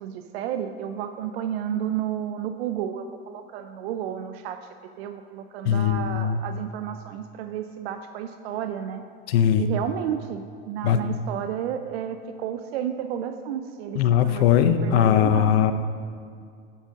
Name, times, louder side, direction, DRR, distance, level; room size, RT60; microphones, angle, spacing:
voice 1, 0.0-4.7 5.0-9.0 9.6-15.6, right 9 dB, 85° right, 8 dB, 0.5 m, -32 dB
voice 2, 5.6-6.4 9.3-9.7 10.8-11.0 13.9-15.7, left 10 dB, 80° left, 9 dB, 0.6 m, -20 dB
8.9 x 3.9 x 6.3 m, 2.2 s
supercardioid pair, 135°, 30 cm